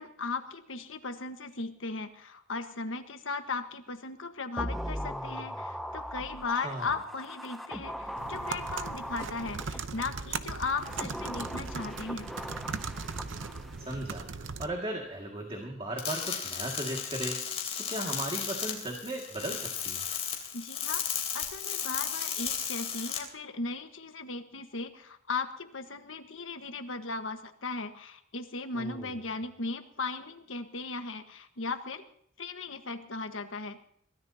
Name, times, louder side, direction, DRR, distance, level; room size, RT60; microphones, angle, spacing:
voice 1, 0.0-12.3 20.5-32.0 32.4-33.8, left 3 dB, 85° left, 7 dB, 1.5 m, -37 dB
sound 1, 4.6-10.0 10.7-13.9 14.2-14.3, equal, ahead, 0.6 m, -39 dB
sound 2, 8.2-14.7, right 4 dB, 75° right, 0.8 m, -38 dB
voice 2, 13.8-20.0 28.7-29.2, right 1 dB, 30° right, 1 dB, 2.2 m, -37 dB
sound 3, 16.0-23.2, left 8 dB, 30° left, 3.4 m, -34 dB
23.0 x 16.5 x 2.9 m, 0.67 s
head